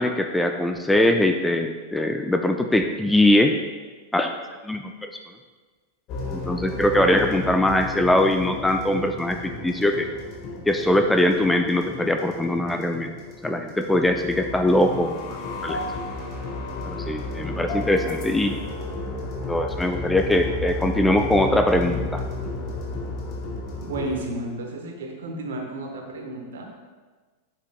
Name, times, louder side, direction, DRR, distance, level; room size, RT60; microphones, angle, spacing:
voice 1, 0.0-3.5 4.1-4.3 4.6-5.1 6.3-10.1 10.7-13.1 13.4-15.8 16.9-18.5 19.5-22.2, left 1 dB, 5° left, 5 dB, 0.4 m, -22 dB
sound 1, 6.1-24.3, left 2 dB, 40° left, 1.2 m, -33 dB
voice 2, 23.8-26.7, right 1 dB, 60° right, 2 dB, 1.2 m, -32 dB
10.5 x 6.7 x 2.3 m, 1.4 s
figure-of-eight pair, 90°, 0 cm